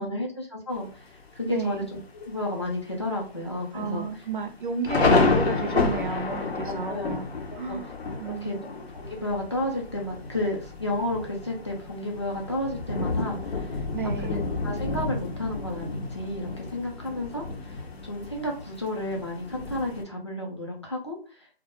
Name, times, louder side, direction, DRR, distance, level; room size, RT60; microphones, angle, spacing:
voice 1, 0.0-4.1 6.7-7.1 7.5-7.8 8.3-13.8 14.2-21.5, left 1 dB, 30° left, -1 dB, 0.4 m, -32 dB
Thunder, 0.7-1.3 1.8-1.9 2.2-2.6 3.0-3.1 3.8-20.0, left 3 dB, 85° left, 0.7 m, -30 dB
voice 2, 1.5-1.9 3.7-7.9 8.2-8.7 13.9-14.4, right 5 dB, 55° right, 8 dB, 0.4 m, -33 dB
2.2 x 2.0 x 2.9 m, 0.38 s
figure-of-eight pair, 160°, 30 cm